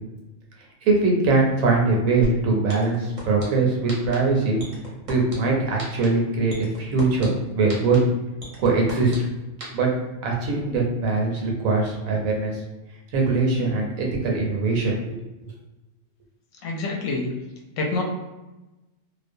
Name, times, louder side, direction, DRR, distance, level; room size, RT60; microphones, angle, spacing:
voice 1, 0.8-4.6 5.1-8.0 8.6-9.3 9.7-9.9 10.2-12.6 13.1-15.2, right 3 dB, 80° right, -1 dB, 1.0 m, -22 dB
sound 1, 2.2-2.3 2.7-3.4 3.9-4.1 4.6-5.3 5.8-6.1 6.5-7.2 7.7-8.0 8.4-9.2 9.6-9.7, right 1 dB, 45° right, 0.6 m, -34 dB
voice 2, 16.6-17.3 17.8-18.0, left 3 dB, 70° left, 0 dB, 0.9 m, -26 dB
2.4 x 2.1 x 2.6 m, 1.1 s
omnidirectional pair, 1.5 m